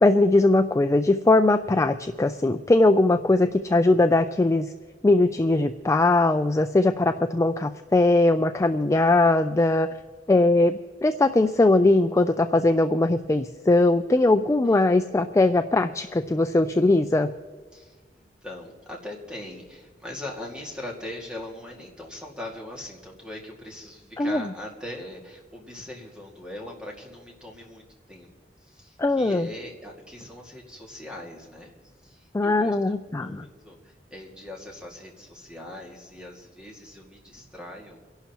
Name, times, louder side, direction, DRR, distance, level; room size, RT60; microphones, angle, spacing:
voice 1, 0.0-4.7 5.0-9.9 10.3-17.3 24.2-24.4 29.0-29.5 32.3-33.5, left 2 dB, 15° left, 8 dB, 0.3 m, -20 dB
voice 2, 17.7-28.3 28.6-31.7 32.0-38.0, left 1 dB, 5° right, -1 dB, 2.1 m, -41 dB
29.5 x 11.5 x 2.9 m, 1.5 s
head